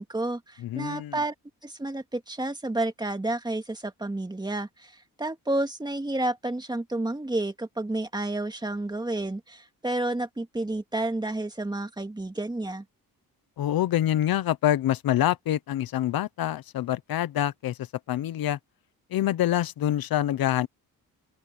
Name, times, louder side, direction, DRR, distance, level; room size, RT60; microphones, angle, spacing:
voice 1, 0.0-1.3 1.6-12.8, right 2 dB, 10° right, 2.0 m, -30 dB
voice 2, 0.6-1.2 13.6-18.6 19.1-20.7, left 12 dB, 80° left, 0.9 m, -26 dB
open air
cardioid pair, 130°, 36 cm